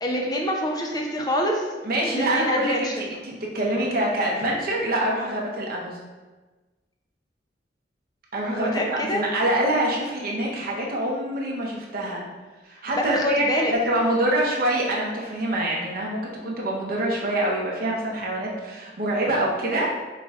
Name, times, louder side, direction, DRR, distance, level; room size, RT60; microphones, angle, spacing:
voice 1, 0.0-1.7 2.1-2.9 8.6-9.3 13.0-13.7, equal, 20° left, 1 dB, 0.6 m, -26 dB
voice 2, 1.8-6.0 8.3-12.2 12.6-13.4 13.9-19.9, right 1 dB, 55° right, -3 dB, 0.9 m, -25 dB
5.7 x 3.2 x 2.4 m, 1.2 s
head